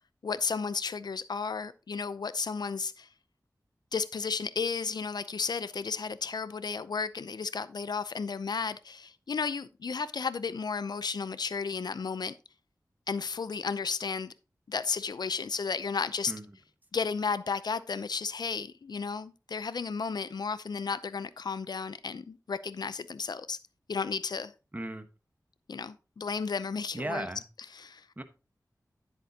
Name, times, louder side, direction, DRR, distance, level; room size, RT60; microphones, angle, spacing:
voice 1, 0.2-3.1 3.9-12.3 13.1-14.3 14.7-16.3 16.9-23.6 23.9-24.5 25.7-27.3 27.7-28.0, left 5 dB, 80° left, 0.6 m, -33 dB
voice 2, 24.7-25.0 26.9-27.4 28.2-28.3, right 1 dB, 25° right, 1.2 m, -35 dB
10.0 x 7.9 x 2.9 m
wide cardioid pair, 55°, 7 cm